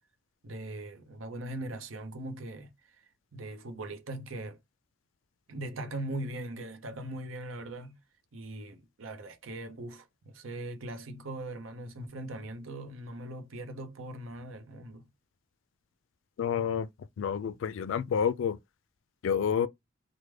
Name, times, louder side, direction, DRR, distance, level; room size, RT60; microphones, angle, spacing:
voice 1, 0.4-3.0 3.3-4.6 5.5-8.0 8.3-15.1, right 1 dB, 85° right, 0.7 m, -40 dB
voice 2, 16.4-16.9 17.2-18.6 19.2-19.7, left 7 dB, 70° left, 0.3 m, -29 dB
3.3 x 2.1 x 3.2 m
head